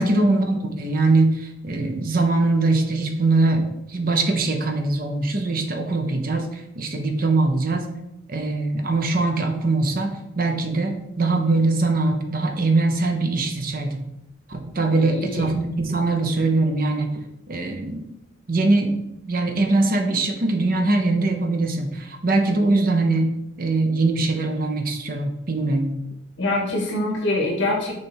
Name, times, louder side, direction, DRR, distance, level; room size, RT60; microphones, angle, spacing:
voice 1, 0.0-7.9 8.3-14.0 14.5-17.1 17.5-18.0 18.5-18.9 19.2-23.3 23.6-25.9, right 2 dB, 45° right, 4 dB, 0.7 m, -22 dB
voice 2, 15.0-15.5 26.4-27.9, left 2 dB, 65° left, -2 dB, 1.9 m, -24 dB
6.4 x 3.3 x 4.4 m, 0.85 s
head